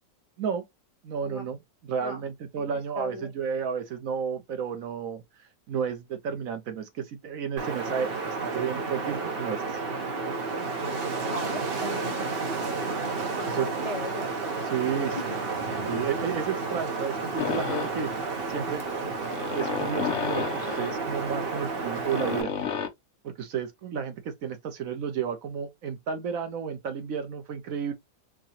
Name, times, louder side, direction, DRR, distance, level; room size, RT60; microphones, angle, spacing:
voice 1, 1.0-5.2 5.7-9.8 13.6-13.7 14.7-15.2 15.8-18.8 19.5-22.5 23.2-27.9, right 7 dB, 65° right, 1.1 m, -32 dB
voice 2, 2.6-3.3 11.2-12.2 13.4-14.3 15.2-15.3, left 2 dB, 40° left, 0.5 m, -38 dB
Wind, 7.6-22.4, right 3 dB, 45° right, 1.0 m, -31 dB
sound 1, 17.4-22.9, left 6 dB, 60° left, 1.0 m, -33 dB
4.7 x 2.3 x 2.8 m
omnidirectional pair, 1.6 m